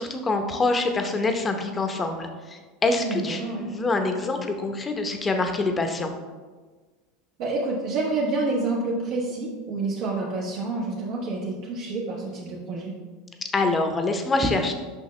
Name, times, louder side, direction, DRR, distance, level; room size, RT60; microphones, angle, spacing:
voice 1, 0.0-6.1 13.5-14.7, left 3 dB, 20° left, 5 dB, 0.8 m, -25 dB
voice 2, 3.0-3.7 7.4-12.9, right 3 dB, 65° right, -6 dB, 1.3 m, -28 dB
6.5 x 5.4 x 3.2 m, 1.4 s
supercardioid pair, 105°, 0 cm